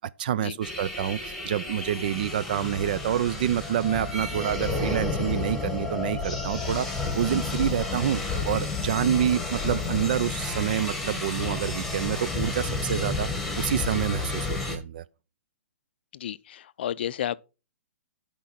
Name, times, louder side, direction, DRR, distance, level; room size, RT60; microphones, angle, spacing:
voice 1, 0.0-13.3 13.6-15.0, right 10 dB, 40° right, 0.3 m, -27 dB
sound 1, 0.6-14.8, left 3 dB, ahead, 1.5 m, -31 dB
voice 2, 16.1-17.4, left 10 dB, 50° left, 0.4 m, -32 dB
10.0 x 5.1 x 4.3 m
hypercardioid pair, 165°, 7 cm